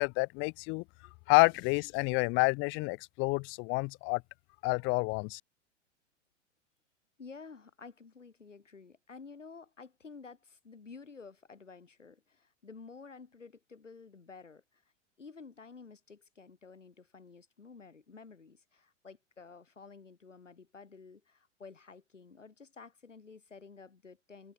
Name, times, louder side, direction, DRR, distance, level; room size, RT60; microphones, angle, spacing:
voice 1, 0.0-0.8 1.3-4.2 4.6-5.4, left 29 dB, 35° left, 0.6 m, -28 dB
voice 2, 7.2-14.8 15.2-24.5, left 4 dB, 90° left, 7.3 m, -52 dB
hypercardioid pair, 100°, 36 cm